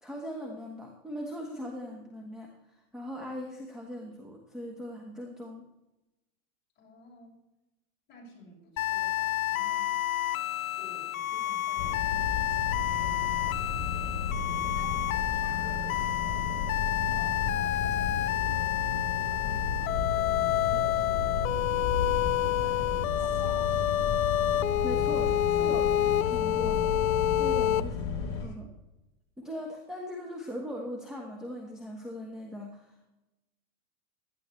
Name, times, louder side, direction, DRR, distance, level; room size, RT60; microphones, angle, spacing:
voice 1, 0.0-2.5 2.9-5.6 24.8-25.3 25.6-25.9 26.2-26.9 27.4-28.7 29.4-33.1, equal, ahead, 0 dB, 1.2 m, -40 dB
voice 2, 6.8-7.4 8.1-9.9 10.8-14.7 15.1-16.5 17.3-20.0 20.6-22.7 23.0-24.2 25.0-25.4 27.8-28.6, left 2 dB, 25° left, -3 dB, 5.5 m, -54 dB
sound 1, 8.8-27.8, left 13 dB, 85° left, 0.7 m, -29 dB
sound 2, 11.8-28.5, left 5 dB, 45° left, 3.5 m, -33 dB
16.0 x 12.5 x 3.2 m, 0.99 s
supercardioid pair, 145°, 40 cm